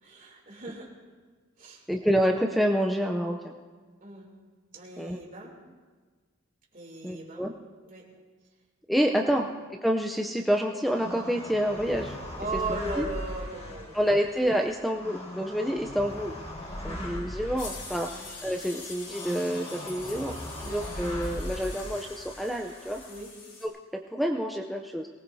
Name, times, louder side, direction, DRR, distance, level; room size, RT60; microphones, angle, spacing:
voice 1, 0.0-0.9 1.6-1.8 4.0-4.3 4.7-5.5 6.7-7.5 7.8-8.0 9.1-9.4 12.4-14.0 16.8-17.1 18.1-18.3 20.6-20.8 23.1-23.3, right 2 dB, 40° right, -2 dB, 3.0 m, -37 dB
voice 2, 1.9-3.6 5.0-5.2 7.0-7.5 8.9-9.5 9.8-12.2 12.7-13.1 13.9-16.4 16.8-20.3 20.7-23.0 23.6-25.1, equal, ahead, 1 dB, 0.5 m, -28 dB
sound 1, 10.8-23.2, left 1 dB, 30° left, 1.8 m, -40 dB
sound 2, 17.6-23.7, left 3 dB, 85° left, 4.7 m, -44 dB
23.0 x 18.5 x 2.7 m, 1.4 s
head